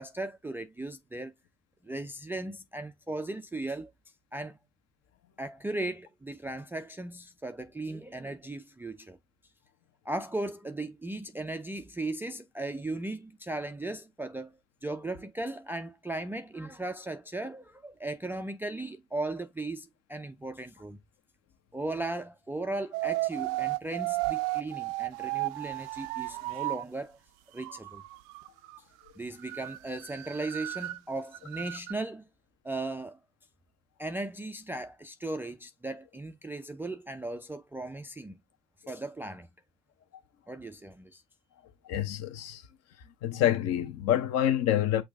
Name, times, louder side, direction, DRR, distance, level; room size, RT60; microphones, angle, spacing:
voice 1, 0.0-1.3 1.8-3.9 4.3-4.6 5.4-9.2 10.1-14.5 14.8-21.0 21.7-27.2 27.5-28.0 29.2-32.2 32.6-33.2 34.0-38.3 38.9-39.5 40.5-41.2, right 2 dB, 5° right, 0.4 m, -37 dB
sound 1, 22.9-26.8 27.6-28.8 29.1-29.2 29.4-31.0 31.3-31.9, right 20 dB, 60° right, 0.6 m, -34 dB
voice 2, 41.8-42.6 43.2-45.0, left 11 dB, 45° left, 1.0 m, -27 dB
6.2 x 2.3 x 3.5 m
hypercardioid pair, 75°, 34 cm